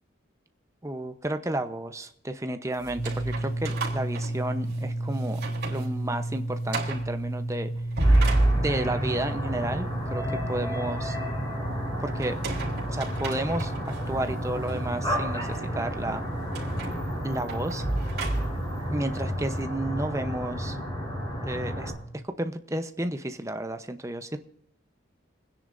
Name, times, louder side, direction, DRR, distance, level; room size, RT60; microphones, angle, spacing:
voice 1, 0.8-7.7 8.5-11.2 12.0-12.4 12.9-16.2 17.2-17.8 18.9-20.8 21.4-21.9 22.2-24.4, right 1 dB, 15° right, 8 dB, 0.8 m, -32 dB
sound 1, 2.8-4.9 5.3-5.9 6.2-6.3 6.7-7.1 7.7-9.1 12.2-14.0 14.6-14.8 16.5-18.8, right 2 dB, 55° right, 3.4 m, -28 dB
sound 2, 3.0-22.3, right 1 dB, 80° left, 2.0 m, -35 dB
sound 3, 8.0-21.9, equal, 20° left, 4.0 m, -32 dB
30.0 x 10.0 x 2.6 m, 0.74 s
head